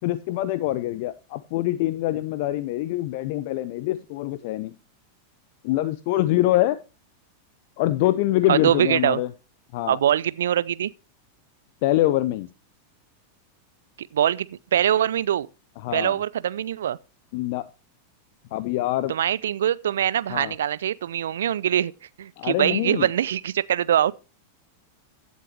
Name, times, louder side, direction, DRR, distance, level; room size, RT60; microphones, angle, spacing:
voice 1, 0.0-4.8 5.6-6.8 7.8-9.3 9.7-10.0 11.8-12.5 15.8-16.2 17.3-17.7 18.5-19.1 20.3-20.5 22.4-23.1, left 15 dB, 50° left, 0.5 m, -24 dB
voice 2, 8.5-9.2 9.9-10.9 14.0-15.5 15.9-17.0 19.1-21.9 22.2-24.1, right 10 dB, 60° right, 0.5 m, -23 dB
15.5 x 8.1 x 2.9 m
figure-of-eight pair, 90°, 0 cm